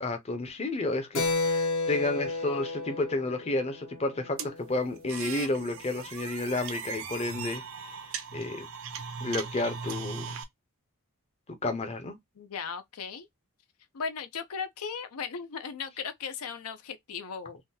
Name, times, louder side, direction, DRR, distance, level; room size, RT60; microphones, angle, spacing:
voice 1, 0.0-7.6 8.3-8.7 9.2-10.3 11.6-12.2, left 2 dB, 30° left, 0.6 m, -31 dB
Keyboard (musical), 1.1-5.2, left 3 dB, 60° left, 0.8 m, -32 dB
sound 1, 4.4-10.4, right 6 dB, 60° right, 0.6 m, -38 dB
voice 2, 12.4-13.3 13.9-17.6, left 6 dB, 80° left, 0.5 m, -37 dB
3.5 x 2.2 x 2.7 m
head